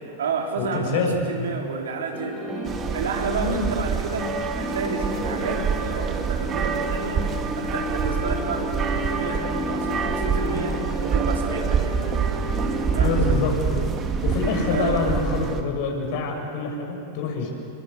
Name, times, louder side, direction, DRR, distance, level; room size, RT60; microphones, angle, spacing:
voice 1, 0.0-7.3 7.5-12.4 12.9-13.4 14.7-15.1, right 4 dB, 65° right, 0 dB, 4.4 m, -30 dB
voice 2, 0.6-1.5 3.4-3.6 13.0-13.8 14.2-17.5, left 4 dB, 50° left, 2 dB, 6.8 m, -26 dB
sound 1, 2.1-14.9, left 1 dB, 10° right, 4.4 m, -34 dB
sound 2, 2.7-15.6, right 6 dB, 25° right, 2.3 m, -26 dB
29.0 x 24.0 x 8.1 m, 2.5 s
figure-of-eight pair, 90°, 0 cm